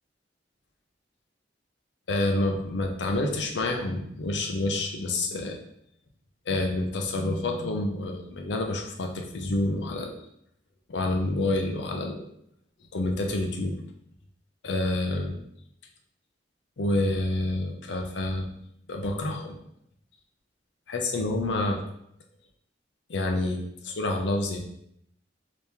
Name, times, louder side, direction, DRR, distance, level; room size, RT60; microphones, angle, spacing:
voice 1, 2.1-5.6 6.5-10.1 10.9-12.2 12.9-13.7 14.6-15.4 16.8-18.5 18.9-19.6 20.9-21.8 23.1-24.6, left 2 dB, 70° left, 3 dB, 0.6 m, -28 dB
3.0 x 2.8 x 3.4 m, 0.74 s
head